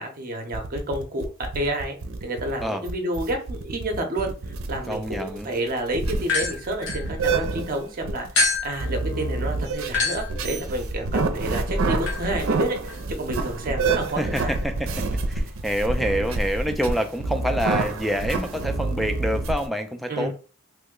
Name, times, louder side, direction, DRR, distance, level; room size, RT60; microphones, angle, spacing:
voice 1, 0.0-4.3 4.7-14.6 20.1-20.3, right 1 dB, 45° right, 0.6 m, -30 dB
sound 1, 0.5-19.7, right 3 dB, 85° right, 0.5 m, -28 dB
voice 2, 4.9-5.5 14.2-14.9 15.3-20.3, equal, ahead, 0.3 m, -27 dB
sound 2, 6.2-7.7 8.4-16.6, left 2 dB, 65° left, 0.9 m, -30 dB
3.1 x 2.1 x 3.6 m
head